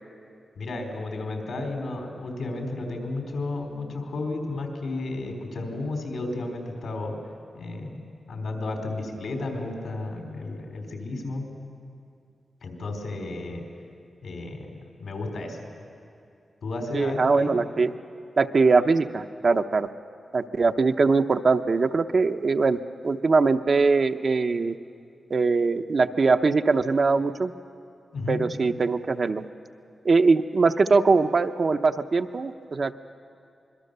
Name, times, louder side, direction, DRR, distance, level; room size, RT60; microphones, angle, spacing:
voice 1, 0.6-7.1 7.5-8.0 8.3-11.5 12.6-13.6 14.2-15.7 16.6-17.5 28.1-28.4, left 2 dB, 80° left, 2 dB, 4.1 m, -33 dB
voice 2, 16.9-17.9 18.4-19.9 20.3-24.8 25.3-27.5 28.3-29.5 30.0-32.9, right 4 dB, 50° right, 7 dB, 0.7 m, -22 dB
25.5 x 22.5 x 6.8 m, 2.5 s
wide cardioid pair, 130°, 0 cm